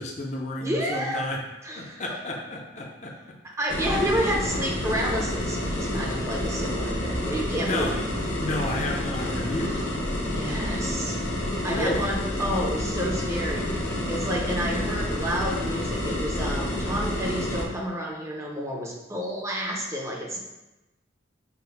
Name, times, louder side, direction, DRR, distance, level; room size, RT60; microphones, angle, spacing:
voice 1, 0.0-1.4 1.7-3.1 4.0-4.1 7.6-7.9 8.4-9.8 11.6-12.1, left 1 dB, 35° left, 0 dB, 0.4 m, -31 dB
voice 2, 0.6-1.3 1.6-2.2 3.6-7.9 9.6-9.9 10.3-11.2 11.6-13.7 14.1-20.4, equal, 15° right, -1 dB, 0.5 m, -30 dB
sound 1, 3.7-17.7, left 1 dB, 80° left, 0.8 m, -29 dB
5.9 x 2.0 x 3.3 m, 1.0 s
head